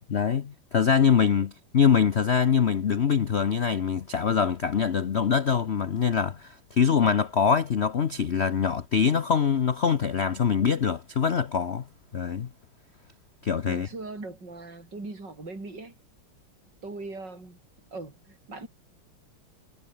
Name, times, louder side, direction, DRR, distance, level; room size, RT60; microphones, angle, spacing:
voice 1, 0.1-11.8 12.1-12.5 13.4-13.9, left 7 dB, 70° left, 0.6 m, -24 dB
voice 2, 13.7-15.9 16.8-17.6 17.9-18.7, right 3 dB, 50° right, 7.1 m, -39 dB
omnidirectional pair, 2.4 m